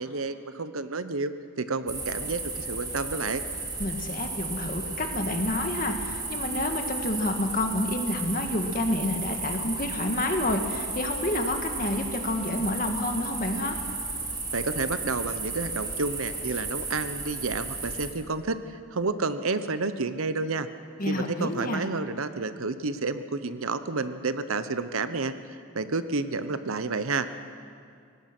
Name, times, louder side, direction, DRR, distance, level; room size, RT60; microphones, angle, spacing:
voice 1, 0.0-3.4 14.5-18.6 18.9-20.7 21.1-25.3 25.7-27.3, right 3 dB, 85° right, 11 dB, 0.9 m, -30 dB
sound 1, 1.9-18.1, right 3 dB, 20° right, 2.6 m, -34 dB
voice 2, 3.8-13.8 21.0-21.8, left 1 dB, 40° left, 4 dB, 1.8 m, -29 dB
24.0 x 18.5 x 6.1 m, 2.3 s
head